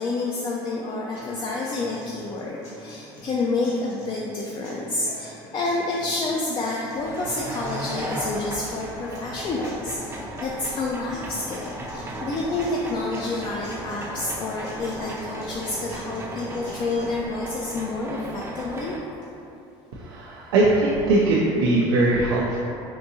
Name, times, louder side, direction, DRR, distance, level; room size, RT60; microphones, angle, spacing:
voice 1, 0.0-18.9, left 2 dB, 35° left, -3 dB, 0.3 m, -29 dB
sound 1, 1.1-17.1, equal, 60° left, 1.1 m, -43 dB
sound 2, 6.9-19.0, right 1 dB, 20° right, 0.5 m, -36 dB
voice 2, 19.9-22.6, right 2 dB, 90° right, -6 dB, 0.4 m, -21 dB
3.6 x 2.6 x 2.6 m, 2.8 s
supercardioid pair, 85°, 13 cm